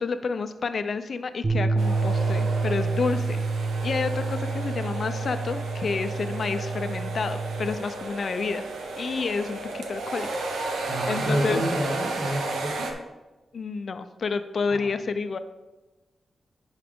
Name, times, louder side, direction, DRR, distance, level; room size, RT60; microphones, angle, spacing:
voice 1, 0.0-3.4 3.8-8.6 9.0-11.6 13.5-15.4, left 4 dB, 60° left, 10 dB, 0.6 m, -30 dB
sound 1, 1.4-7.7, right 3 dB, 35° right, 1.4 m, -28 dB
sound 2, 1.8-12.9, right 2 dB, 90° right, 1.0 m, -33 dB
voice 2, 10.8-12.9 14.7-14.9, right 1 dB, 55° right, -1 dB, 1.9 m, -29 dB
10.5 x 4.8 x 3.7 m, 1.1 s
cardioid pair, 70°, 0 cm